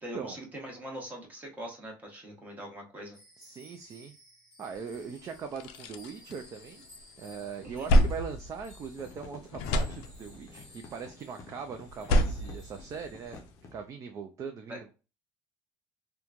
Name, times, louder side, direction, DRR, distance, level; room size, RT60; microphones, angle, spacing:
voice 1, 0.0-3.2 7.6-7.9 14.7-14.8, equal, 15° right, 0 dB, 1.0 m, -42 dB
sound 1, 3.1-13.4, left 1 dB, 5° left, 1.3 m, -57 dB
voice 2, 3.4-4.1 4.6-6.9 7.2-13.4 13.7-14.9, right 6 dB, 35° right, 5 dB, 0.4 m, -40 dB
sound 2, 4.9-5.0 5.3-7.0 7.4-9.2 9.5-10.6 11.8-13.5, equal, 80° left, 0.4 m, -28 dB
sound 3, 8.8-13.9, left 3 dB, 35° left, 0.6 m, -51 dB
3.0 x 2.2 x 2.4 m, 0.32 s
cardioid pair, 125°, 10 cm